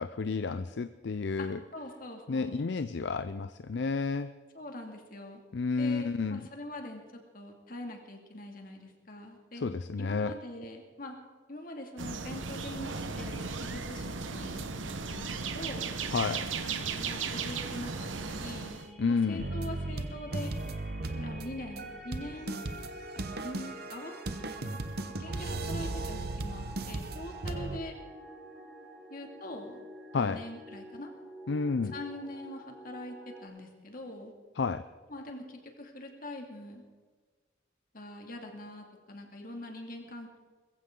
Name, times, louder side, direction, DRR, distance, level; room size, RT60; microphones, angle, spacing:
voice 1, 0.0-1.6 2.3-4.3 5.5-6.4 9.5-10.3 16.1-16.5 19.0-19.5 30.1-30.4 31.5-31.9 34.6-34.9, left 4 dB, 65° left, 12 dB, 0.5 m, -31 dB
voice 2, 1.4-2.6 4.5-5.4 5.8-9.6 10.0-11.2 11.5-15.9 16.6-18.8 19.1-20.5 21.1-22.6 23.4-24.8 25.0-28.0 29.1-29.8 30.2-31.1 31.9-34.3 35.1-36.8 37.9-40.4, left 1 dB, 45° left, 3 dB, 2.4 m, -43 dB
sound 1, 12.0-18.9, right 5 dB, 90° right, 1.1 m, -36 dB
sound 2, 16.0-33.5, right 1 dB, ahead, 3.4 m, -50 dB
sound 3, 19.4-27.8, right 2 dB, 55° right, 1.0 m, -37 dB
21.0 x 15.5 x 3.8 m, 1.4 s
head